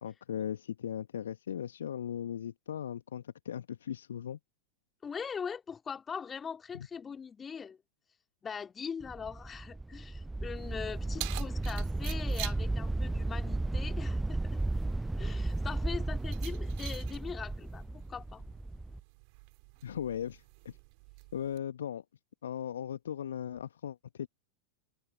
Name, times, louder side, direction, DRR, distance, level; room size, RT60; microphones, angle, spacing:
voice 1, 0.0-4.4 6.8-6.9 19.8-20.8 21.3-22.0 22.4-24.3, left 9 dB, 65° left, 1.7 m, -38 dB
voice 2, 5.0-7.8 8.4-14.6 15.2-17.8 18.1-18.4, left 6 dB, 20° left, 2.8 m, -41 dB
sound 1, 9.0-19.0, right 2 dB, 5° right, 0.4 m, -34 dB
Keys jangling, 10.5-21.6, right 40 dB or more, 45° right, 2.9 m, -48 dB
figure-of-eight pair, 90°, 0 cm